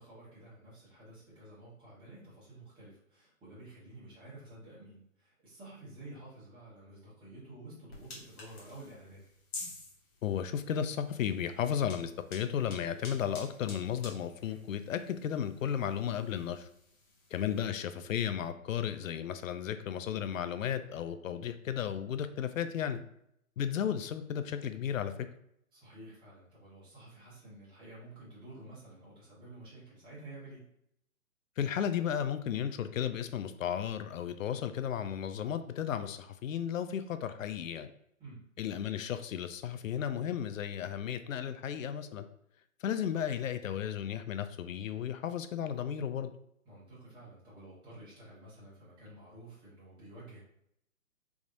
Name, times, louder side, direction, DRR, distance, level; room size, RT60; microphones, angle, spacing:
voice 1, 0.0-9.2 22.8-23.0 25.7-30.6 38.2-38.4 46.6-50.4, right 2 dB, 10° right, -8 dB, 1.3 m, -51 dB
sound 1, 7.9-17.6, left 3 dB, 45° left, 1.4 m, -50 dB
voice 2, 10.2-16.7 17.3-23.0 23.6-25.1 31.6-37.9 38.6-42.3 42.8-46.3, left 9 dB, 65° left, 10 dB, 0.5 m, -34 dB
3.6 x 3.1 x 2.5 m, 0.74 s
hypercardioid pair, 145°, 43 cm